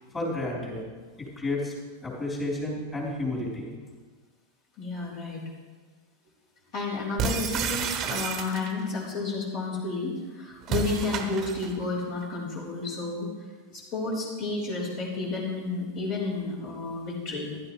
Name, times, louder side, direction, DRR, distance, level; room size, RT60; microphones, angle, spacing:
voice 1, 0.1-0.8 1.2-1.7 2.0-3.8, left 2 dB, 20° left, -4 dB, 3.8 m, -31 dB
voice 2, 4.8-5.4 6.7-13.3 13.7-17.5, left 3 dB, 45° left, -5 dB, 3.8 m, -31 dB
sound 1, 7.2-8.9 10.6-11.8, right 6 dB, 30° right, 1.2 m, -30 dB
15.0 x 12.0 x 3.2 m, 1.4 s
figure-of-eight pair, 90°, 0 cm